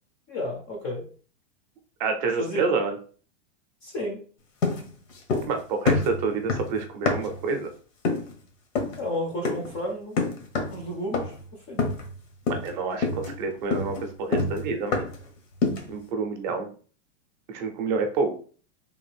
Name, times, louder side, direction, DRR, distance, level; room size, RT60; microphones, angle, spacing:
voice 1, 0.3-1.1 2.4-2.6 3.8-4.3 9.0-10.2 10.7-11.9, left 1 dB, 20° left, 2 dB, 0.5 m, -32 dB
voice 2, 2.0-3.0 5.5-7.7 12.5-15.1 15.9-16.7 17.5-18.4, right 4 dB, 40° right, 5 dB, 0.5 m, -28 dB
sound 1, 4.6-5.6 5.9-7.4 8.0-8.3 8.8-9.0 9.4-9.8 10.2-10.8 11.1-11.5 11.8-12.2 12.5-12.7 13.0-15.3 15.6-16.0, left 3 dB, 80° left, 1.1 m, -27 dB
3.4 x 2.5 x 3.3 m, 0.41 s
supercardioid pair, 160°, 38 cm